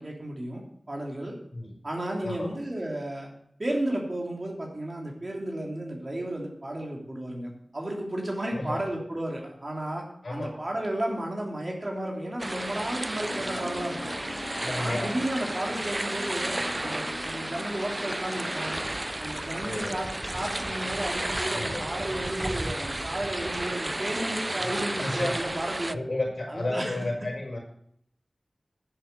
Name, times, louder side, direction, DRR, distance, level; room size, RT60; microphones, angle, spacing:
voice 1, 0.0-1.4 1.8-3.3 3.6-14.1 14.8-18.8 19.2-26.0 26.5-27.0, right 1 dB, 45° right, -1 dB, 3.2 m, -33 dB
voice 2, 8.5-8.8 10.2-10.5 14.6-15.1 19.6-20.0 21.5-21.9 24.6-25.4 25.9-27.6, left 2 dB, 60° left, 0 dB, 5.6 m, -32 dB
sound 1, 12.4-25.9, right 1 dB, 25° right, 0.4 m, -32 dB
sound 2, 13.2-24.8, left 2 dB, 85° left, 2.2 m, -44 dB
10.5 x 8.3 x 6.9 m, 0.69 s
wide cardioid pair, 70°, 0 cm